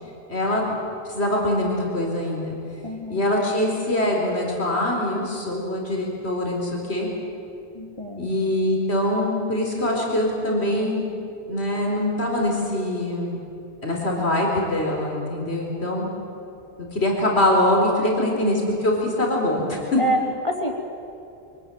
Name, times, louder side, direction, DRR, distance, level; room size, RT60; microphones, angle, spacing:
voice 1, 0.3-0.8 1.1-2.5 3.1-7.1 8.2-11.0 11.5-13.4 13.8-16.1 16.9-20.0, left 1 dB, 90° left, -1 dB, 4.4 m, -23 dB
voice 2, 2.8-3.2 7.7-8.4 18.0-18.1 20.0-20.7, right 1 dB, 30° left, 1 dB, 2.9 m, -27 dB
25.0 x 18.5 x 9.0 m, 2.6 s
omnidirectional pair, 1.1 m